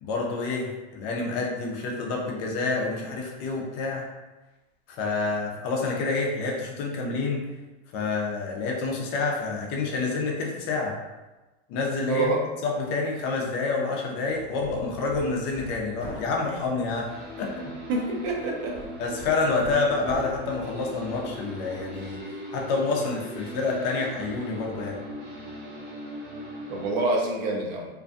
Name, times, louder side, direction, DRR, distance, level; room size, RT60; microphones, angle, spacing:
voice 1, 0.0-4.0 5.0-7.4 7.9-10.9 11.7-12.3 12.6-17.1 17.4-17.7 19.0-22.2 22.5-25.0, left 3 dB, 35° left, -1 dB, 0.4 m, -28 dB
voice 2, 12.1-12.4 17.9-18.8 26.7-27.9, right 2 dB, 40° right, 0 dB, 0.5 m, -26 dB
Hammer, 14.3-22.1, equal, 15° left, 0.9 m, -45 dB
sound 1, 17.1-27.0, right 1 dB, 65° right, 1.0 m, -39 dB
2.5 x 2.1 x 2.4 m, 1.1 s
supercardioid pair, 140°, 33 cm